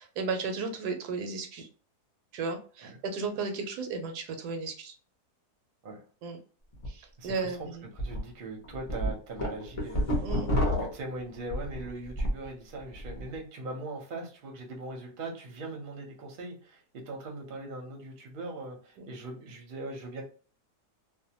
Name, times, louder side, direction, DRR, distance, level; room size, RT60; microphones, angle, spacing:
voice 1, 0.0-1.7 2.3-4.9 6.2-6.4 6.9-7.8 10.2-10.5 19.0-19.1, right 4 dB, 80° right, 5 dB, 1.1 m, -34 dB
sound 1, 6.7-6.9 7.3-7.4 8.0-8.2 8.6-12.4 12.8-13.2, equal, 35° left, 0.6 m, -29 dB
voice 2, 7.2-10.3 10.8-20.2, right 2 dB, 45° right, 0 dB, 0.7 m, -40 dB
2.6 x 2.1 x 2.8 m, 0.39 s
omnidirectional pair, 1.7 m